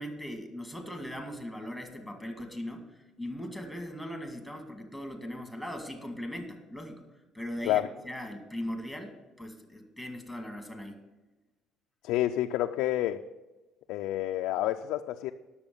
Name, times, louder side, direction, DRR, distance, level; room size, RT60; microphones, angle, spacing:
voice 1, 0.0-7.0 7.3-11.0, equal, 5° right, 4 dB, 2.1 m, -39 dB
voice 2, 12.0-13.2 13.9-15.3, left 13 dB, 85° left, 4 dB, 0.4 m, -29 dB
10.5 x 7.0 x 6.9 m, 1.1 s
cardioid pair, 110°, 0 cm